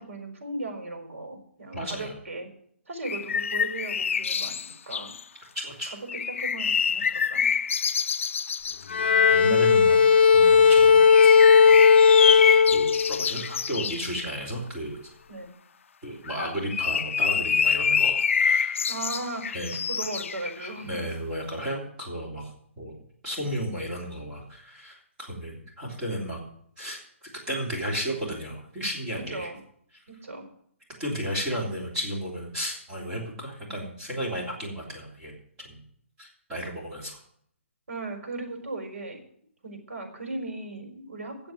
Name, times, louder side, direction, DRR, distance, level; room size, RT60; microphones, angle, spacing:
voice 1, 0.1-2.5 2.9-5.1 6.1-7.5 15.3-15.5 18.9-21.0 29.3-29.6 30.1-30.5 37.9-39.2 39.6-41.5, right 2 dB, 85° right, 4 dB, 4.5 m, -37 dB
voice 2, 1.7-2.1 5.5-5.9 9.3-10.0 10.3-11.3 12.7-15.0 16.0-18.9 19.5-19.7 20.6-22.5 22.8-23.0 23.2-26.4 26.8-29.5 31.0-35.8 36.2-37.2, equal, 10° right, -5 dB, 3.3 m, -33 dB
sound 1, 3.0-5.2 6.1-8.8 11.1-14.0 16.3-20.8, left 7 dB, 70° left, 0.4 m, -26 dB
Bowed string instrument, 8.9-13.3, left 6 dB, 50° left, 0.8 m, -16 dB
9.4 x 7.7 x 9.1 m, 0.65 s
hypercardioid pair, 175°, 7 cm